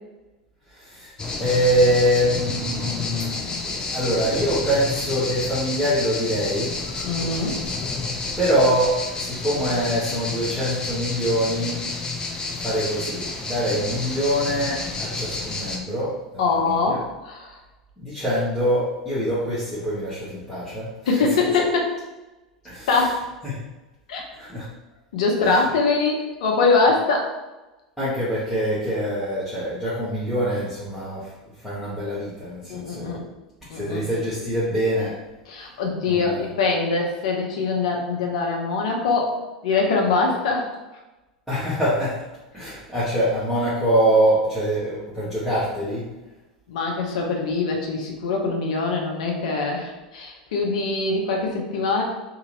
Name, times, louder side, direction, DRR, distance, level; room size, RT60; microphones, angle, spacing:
voice 1, 0.7-1.1 1.4-3.4 3.9-6.8 8.4-11.9 12.5-17.0 18.0-21.2 22.6-23.1 23.4-23.7 24.4-24.7 25.4-25.6 28.0-31.3 31.6-33.2 33.7-35.2 35.6-35.7 36.0-36.5 41.5-42.3 42.5-46.1, equal, 5° right, -11 dB, 1.2 m, -24 dB
sound 1, 1.2-15.8, left 3 dB, 20° left, 0.6 m, -30 dB
voice 2, 7.0-7.6 16.4-17.5 21.1-21.9 22.9-23.2 24.1-24.2 25.1-27.3 32.7-33.2 33.7-34.0 35.5-39.4 39.6-40.7 46.7-52.0, left 3 dB, 65° left, 0 dB, 0.8 m, -23 dB
2.8 x 2.8 x 3.9 m, 1.1 s
figure-of-eight pair, 85°, 4 cm